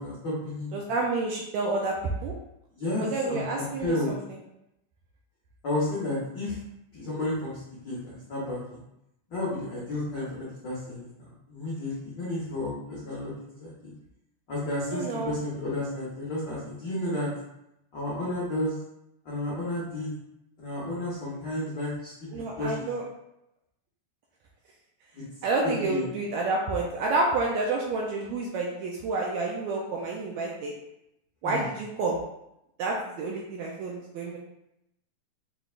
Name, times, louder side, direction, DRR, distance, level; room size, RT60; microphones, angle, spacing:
voice 1, 0.0-0.8 2.8-4.1 5.6-6.6 6.9-8.8 9.3-13.9 14.5-17.3 17.9-18.8 19.2-20.1 20.6-22.9 25.1-25.2 25.6-26.1 31.4-31.7, left 1 dB, 75° left, -7 dB, 1.0 m, -32 dB
voice 2, 0.7-2.0 2.2-2.3 3.0-4.2 14.9-15.3 22.3-23.0 25.4-30.7 31.4-32.2 32.8-34.4, right 3 dB, 80° right, -1 dB, 1.7 m, -29 dB
6.0 x 3.3 x 2.4 m, 0.84 s
omnidirectional pair, 3.6 m